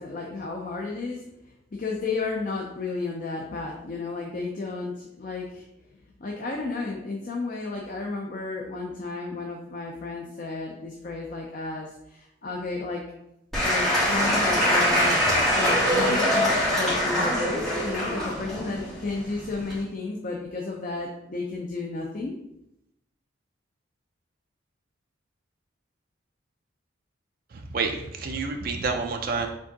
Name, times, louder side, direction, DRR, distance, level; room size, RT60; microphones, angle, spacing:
voice 1, 0.0-5.6 6.2-13.0 13.6-15.2 15.5-22.3, left 3 dB, 45° left, 0 dB, 0.5 m, -32 dB
Applause / Crowd, 13.5-19.8, equal, ahead, 1.6 m, -24 dB
sound 1, 14.2-16.5, right 2 dB, 25° right, 0.9 m, -32 dB
voice 2, 27.5-29.5, right 4 dB, 45° right, 3 dB, 0.5 m, -29 dB
4.4 x 3.5 x 2.8 m, 0.82 s
head